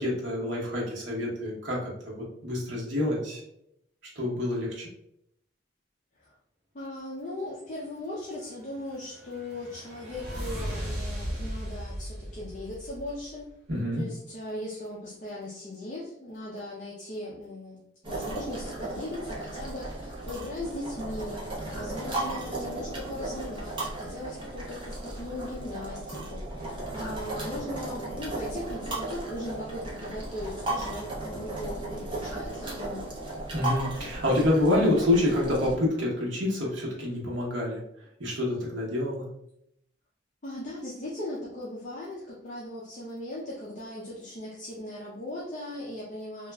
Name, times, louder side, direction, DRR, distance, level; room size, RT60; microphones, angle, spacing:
voice 1, 0.0-3.4 4.2-4.9 13.7-14.0 33.5-37.8 38.2-39.2, left 1 dB, 70° right, -4 dB, 0.9 m, -27 dB
voice 2, 6.7-13.5 13.9-33.0 40.4-46.5, left 1 dB, 40° left, -6 dB, 0.5 m, -38 dB
sound 1, 8.6-13.5, equal, 40° right, 0.9 m, -37 dB
sound 2, 18.0-35.7, right 2 dB, 25° right, 0.5 m, -36 dB
3.0 x 2.3 x 2.2 m, 0.78 s
head